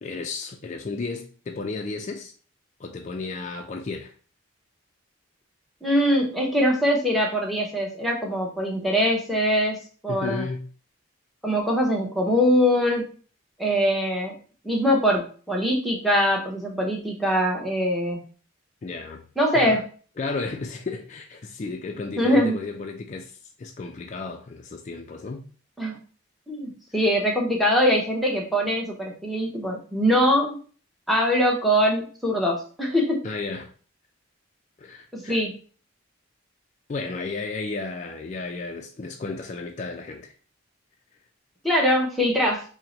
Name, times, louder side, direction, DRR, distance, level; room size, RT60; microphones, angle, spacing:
voice 1, 0.0-2.3 2.8-4.1 10.1-10.7 18.8-19.3 19.5-19.8 20.2-25.5 33.2-33.7 34.8-35.4 36.9-40.3, left 3 dB, 35° left, 0.3 m, -33 dB
voice 2, 5.8-10.5 11.4-13.1 13.6-14.3 14.6-18.2 19.4-19.8 22.2-22.6 25.8-26.0 26.5-30.6 31.1-33.3 35.1-35.5 41.6-42.6, equal, ahead, 0.8 m, -22 dB
4.5 x 2.1 x 3.8 m
head